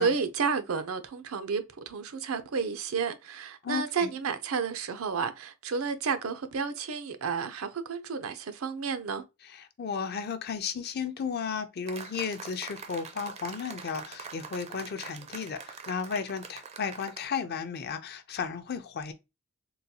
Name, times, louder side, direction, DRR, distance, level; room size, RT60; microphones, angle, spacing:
voice 1, 0.0-9.2, right 5 dB, 85° right, 0.5 m, -31 dB
voice 2, 3.6-4.1 9.4-19.1, left 6 dB, 50° left, 0.5 m, -34 dB
sound 1, 11.9-17.2, right 5 dB, 30° right, 0.4 m, -44 dB
3.8 x 2.3 x 2.7 m
head